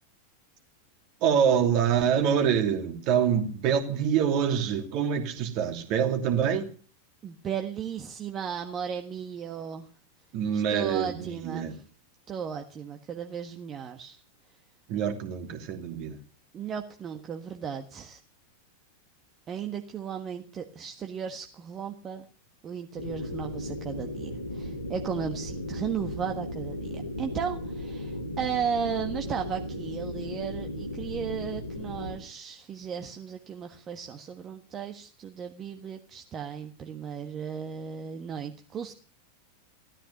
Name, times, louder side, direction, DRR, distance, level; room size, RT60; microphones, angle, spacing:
voice 1, 1.2-6.7 10.3-11.7 14.9-16.2, right 8 dB, 40° right, 5 dB, 2.8 m, -25 dB
voice 2, 7.2-9.9 10.5-11.8 12.3-14.2 16.5-18.2 19.5-22.2 22.6-38.9, right 7 dB, 25° right, 5 dB, 1.5 m, -35 dB
sound 1, 23.0-32.1, left 1 dB, 85° left, 2.7 m, -36 dB
16.5 x 13.5 x 6.6 m, 0.42 s
figure-of-eight pair, 90°, 0 cm